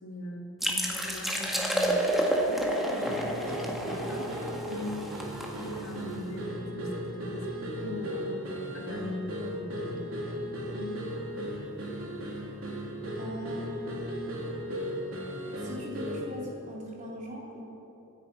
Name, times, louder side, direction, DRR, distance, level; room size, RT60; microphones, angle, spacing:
voice 1, 0.0-2.2 2.5-4.3 5.5-8.4 8.7-10.4, left 1 dB, 75° left, 0 dB, 2.5 m, -41 dB
sound 1, 0.6-6.1, right 1 dB, ahead, 1.8 m, -30 dB
sound 2, 3.0-16.3, equal, 75° right, 3.4 m, -36 dB
voice 2, 4.7-5.0 7.8-8.5 10.7-11.1 13.2-14.0 15.6-17.6, left 1 dB, 35° right, -3 dB, 3.5 m, -40 dB
25.0 x 9.9 x 5.5 m, 2.9 s
head